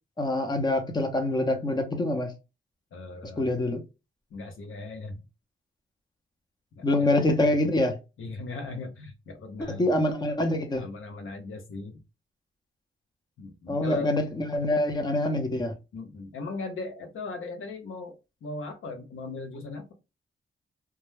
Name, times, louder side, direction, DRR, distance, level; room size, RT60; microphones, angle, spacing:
voice 1, 0.2-2.3 3.4-3.8 6.8-8.0 9.7-10.9 13.7-15.7, left 1 dB, 20° left, 0.6 m, -25 dB
voice 2, 2.9-3.6 4.3-5.2 6.7-7.3 8.2-9.9 10.8-12.0 13.4-14.2 15.9-18.2 18.4-19.9, left 3 dB, 85° left, 0.7 m, -38 dB
2.2 x 2.0 x 3.1 m
cardioid pair, 80°, 20 cm